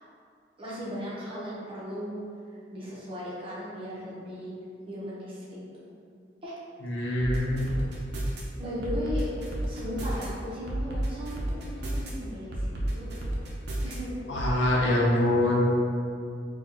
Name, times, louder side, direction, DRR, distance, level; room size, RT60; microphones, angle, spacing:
voice 1, 0.6-2.2 2.5-4.5 4.9-5.4 6.4-6.5 8.6-9.3 9.6-13.1 13.8-14.1, equal, 30° right, -8 dB, 0.9 m, -37 dB
voice 2, 6.8-7.7 14.3-15.7, left 1 dB, 80° left, -3 dB, 0.7 m, -24 dB
sound 1, 7.2-8.4 8.8-10.3 10.7-12.1 12.5-13.9 14.4-14.5, right 1 dB, 65° right, 0.6 m, -31 dB
4.2 x 2.3 x 2.9 m, 2.4 s
head